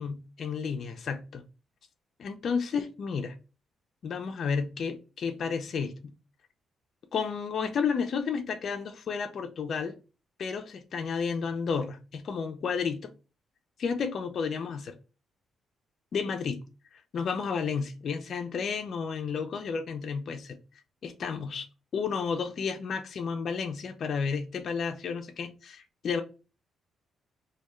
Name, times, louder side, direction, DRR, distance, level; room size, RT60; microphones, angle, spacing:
voice 1, 0.0-1.4 2.2-3.3 4.0-6.1 7.1-10.0 10.4-13.1 13.8-15.0 16.1-16.6 17.1-20.6 21.0-21.6 21.9-26.2, left 5 dB, 50° left, 0.3 m, -32 dB
2.2 x 2.1 x 2.9 m
cardioid pair, 140°, 0 cm